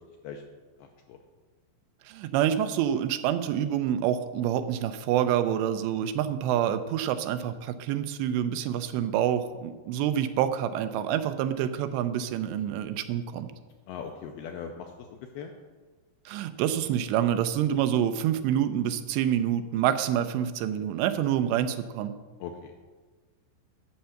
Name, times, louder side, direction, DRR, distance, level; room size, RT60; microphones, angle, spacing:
voice 1, 0.8-1.2 13.9-15.5 22.4-22.7, left 7 dB, 85° left, 3 dB, 2.2 m, -40 dB
voice 2, 2.1-13.5 16.3-22.1, right 10 dB, 85° right, 11 dB, 2.9 m, -27 dB
10.5 x 5.7 x 7.7 m, 1.4 s
omnidirectional pair, 5.0 m